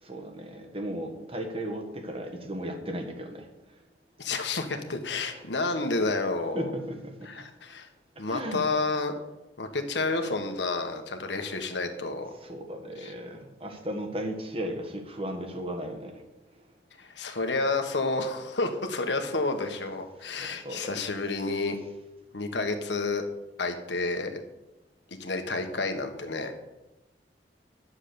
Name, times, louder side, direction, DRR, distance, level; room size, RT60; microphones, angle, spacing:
voice 1, 0.0-3.5 5.3-5.6 6.5-7.3 8.2-8.7 12.3-16.2 20.3-21.0, right 1 dB, 35° right, 4 dB, 1.6 m, -36 dB
voice 2, 4.2-6.6 7.3-7.9 8.2-9.2 9.6-12.3 13.0-13.1 17.0-21.8 22.3-23.2 23.6-24.4 25.2-26.5, left 3 dB, 85° left, 6 dB, 1.5 m, -30 dB
10.0 x 7.2 x 7.0 m, 1.0 s
head